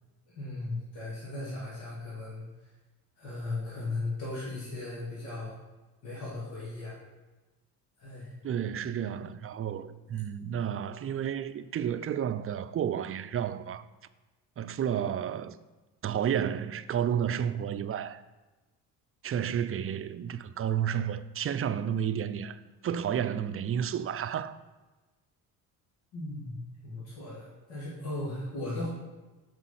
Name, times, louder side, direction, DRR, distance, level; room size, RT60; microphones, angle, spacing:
voice 1, 0.4-2.7 3.2-5.6 6.0-7.0 8.0-8.3 26.1-28.9, left 2 dB, 80° left, 2.4 m, -37 dB
voice 2, 8.4-13.8 14.6-15.6 16.0-18.2 19.2-24.6, right 9 dB, 35° right, 0.5 m, -31 dB
6.1 x 5.2 x 5.6 m
supercardioid pair, 70°, 42 cm